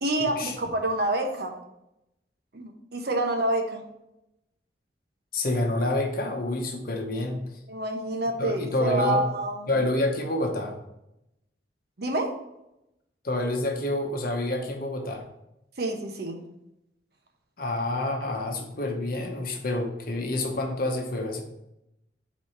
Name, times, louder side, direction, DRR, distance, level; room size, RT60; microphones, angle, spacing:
voice 1, 0.0-1.6 2.5-3.8 7.7-9.7 12.0-12.3 15.8-16.4, right 1 dB, 60° right, 4 dB, 0.9 m, -27 dB
voice 2, 5.3-7.4 8.4-9.3 9.7-10.8 13.2-15.2 17.6-21.4, left 2 dB, 55° left, 3 dB, 0.9 m, -28 dB
4.7 x 4.1 x 5.5 m, 0.86 s
head